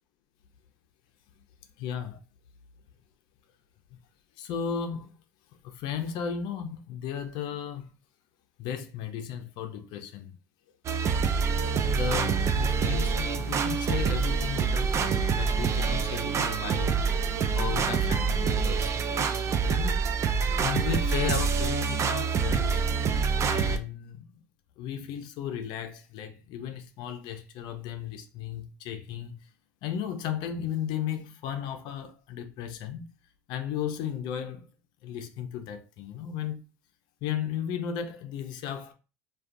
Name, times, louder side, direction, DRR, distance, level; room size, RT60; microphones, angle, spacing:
voice 1, 1.8-2.2 4.4-5.1 5.6-7.9 8.6-10.3 11.8-16.9 17.5-20.1 20.5-22.8 23.4-24.4 24.8-29.5 29.8-33.1 33.5-34.7 35.0-36.6 37.2-38.9, left 8 dB, 60° left, 0.4 m, -35 dB
sound 1, 10.8-23.8, right 5 dB, 35° right, 0.3 m, -26 dB
2.4 x 2.2 x 2.5 m
hypercardioid pair, 80°, 9 cm